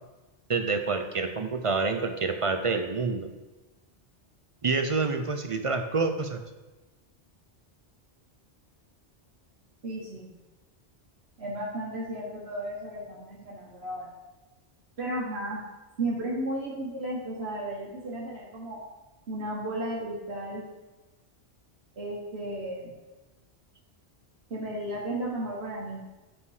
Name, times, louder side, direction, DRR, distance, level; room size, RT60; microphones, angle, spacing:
voice 1, 0.5-3.3 4.6-6.4, right 4 dB, 45° right, 7 dB, 0.4 m, -27 dB
voice 2, 9.8-10.3 11.4-14.1 15.0-15.6 16.0-18.8 19.3-20.6 22.0-22.9 24.5-26.0, right 1 dB, 70° right, -5 dB, 1.6 m, -34 dB
7.2 x 5.6 x 4.8 m, 1.2 s
omnidirectional pair, 1.1 m